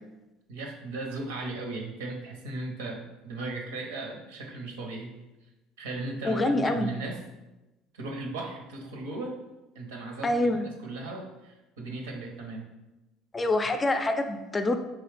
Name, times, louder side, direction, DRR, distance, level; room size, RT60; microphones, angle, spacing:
voice 1, 0.5-5.1 5.8-7.2 7.9-9.4 9.7-12.7, right 2 dB, 85° right, 1 dB, 0.7 m, -37 dB
voice 2, 6.2-6.9 10.2-10.6 13.3-14.8, left 2 dB, 25° left, 7 dB, 0.4 m, -26 dB
3.7 x 3.0 x 3.3 m, 1.0 s
hypercardioid pair, 70°, 0 cm